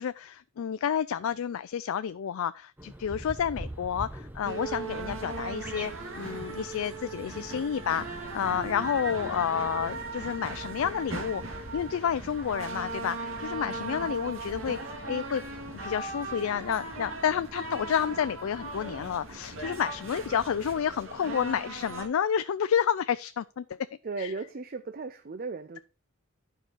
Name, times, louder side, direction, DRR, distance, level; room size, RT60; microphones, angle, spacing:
voice 1, 0.0-14.8 15.0-15.4 15.8-23.8 24.2-24.3, left 8 dB, 85° left, 0.4 m, -30 dB
sound 1, 2.8-20.8, right 1 dB, 10° right, 0.8 m, -47 dB
sound 2, 4.4-22.1, right 3 dB, 75° right, 1.8 m, -38 dB
voice 2, 24.0-25.8, right 4 dB, 45° right, 0.5 m, -36 dB
11.5 x 4.9 x 4.5 m
head